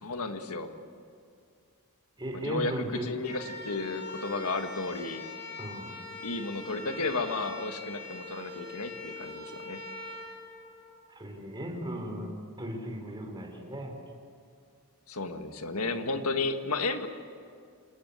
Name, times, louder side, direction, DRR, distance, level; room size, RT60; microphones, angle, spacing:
voice 1, 0.0-0.7 2.3-5.3 6.2-9.8 15.1-17.1, left 3 dB, 80° left, 7 dB, 1.7 m, -33 dB
voice 2, 2.2-3.0 5.6-6.0 11.1-14.0, right 1 dB, 20° right, 3 dB, 3.9 m, -37 dB
sound 1, 3.1-11.3, left 3 dB, 45° left, 7.9 m, -43 dB
27.5 x 20.5 x 8.3 m, 2.2 s
head